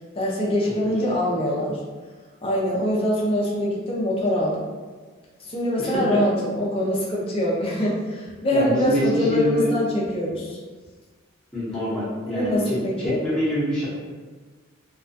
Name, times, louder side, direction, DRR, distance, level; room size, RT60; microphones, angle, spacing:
voice 1, 0.2-1.8 2.4-4.7 5.4-10.6 12.3-13.2, equal, 25° left, -5 dB, 0.5 m, -24 dB
voice 2, 5.8-6.2 8.5-9.8 11.5-13.9, left 1 dB, 5° left, -11 dB, 0.8 m, -25 dB
2.3 x 2.2 x 2.6 m, 1.4 s
head